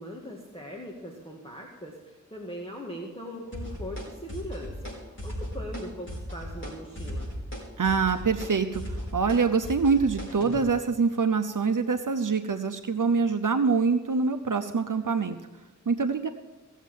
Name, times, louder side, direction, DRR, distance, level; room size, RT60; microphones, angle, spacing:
voice 1, 0.0-7.3, equal, 15° left, -2 dB, 2.0 m, -40 dB
sound 1, 3.5-4.0 4.3-4.9 5.2-5.8 6.1-6.7 7.0-10.6, equal, 40° left, 4.8 m, -36 dB
voice 2, 7.8-8.8 9.1-15.4 15.9-16.3, right 5 dB, 80° right, 7 dB, 0.7 m, -25 dB
17.5 x 7.3 x 7.4 m, 1.2 s
wide cardioid pair, 40°, 31 cm